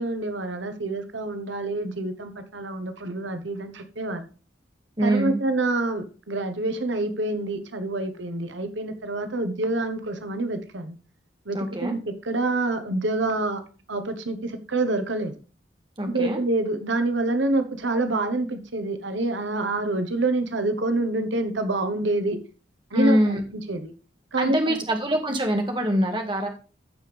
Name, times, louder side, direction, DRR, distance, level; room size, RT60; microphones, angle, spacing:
voice 1, 0.0-4.2 5.0-10.9 11.5-13.6 13.9-15.3 16.0-22.4 22.9-23.9 24.3-24.8, right 2 dB, 80° right, 8 dB, 1.2 m, -27 dB
voice 2, 5.0-5.4 11.5-11.9 16.0-16.4 22.9-23.4 24.4-26.5, equal, 25° right, 3 dB, 1.9 m, -24 dB
15.5 x 5.4 x 3.4 m, 0.36 s
head